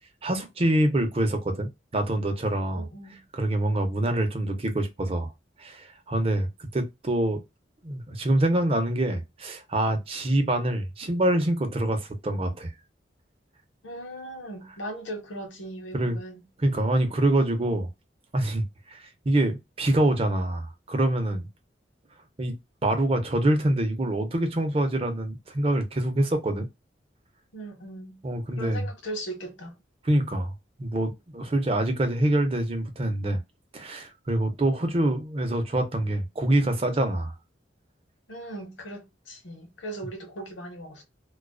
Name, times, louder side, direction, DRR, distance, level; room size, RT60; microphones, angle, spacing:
voice 1, 0.2-2.9 3.3-5.3 5.6-7.4 7.8-12.7 15.9-16.2 16.6-17.9 18.3-21.5 22.4-22.5 22.8-26.7 28.2-28.8 30.1-30.5 30.8-33.4 33.7-37.3, right 1 dB, 30° right, 0.5 m, -25 dB
voice 2, 2.7-3.2 13.8-16.4 27.5-28.2 28.6-29.8 38.3-41.0, right 1 dB, 85° left, 0.8 m, -38 dB
2.4 x 2.3 x 2.2 m
head